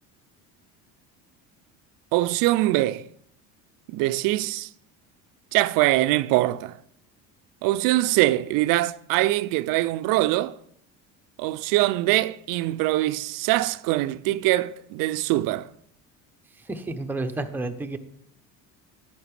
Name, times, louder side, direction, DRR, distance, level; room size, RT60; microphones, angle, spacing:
voice 1, 2.1-3.1 3.9-4.7 5.5-6.8 7.6-10.6 11.4-15.7, right 17 dB, 65° right, 0.5 m, -23 dB
voice 2, 16.5-18.0, right 2 dB, 5° right, 0.7 m, -31 dB
11.0 x 8.5 x 3.3 m
supercardioid pair, 100°, 36 cm